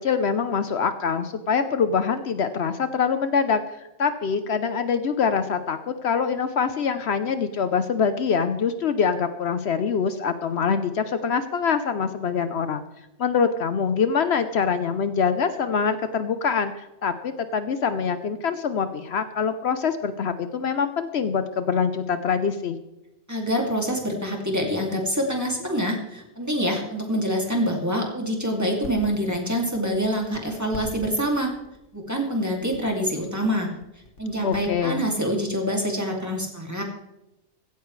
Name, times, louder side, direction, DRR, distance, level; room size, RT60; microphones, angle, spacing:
voice 1, 0.0-12.8 13.2-22.8 34.4-35.0, left 6 dB, 65° left, 10 dB, 1.0 m, -24 dB
voice 2, 23.3-31.5 31.9-33.7 34.2-36.8, equal, 15° right, 0 dB, 2.4 m, -26 dB
sound 1, 28.1-35.5, left 2 dB, 85° left, 2.0 m, -43 dB
16.0 x 14.0 x 3.2 m, 0.92 s
omnidirectional pair, 1.2 m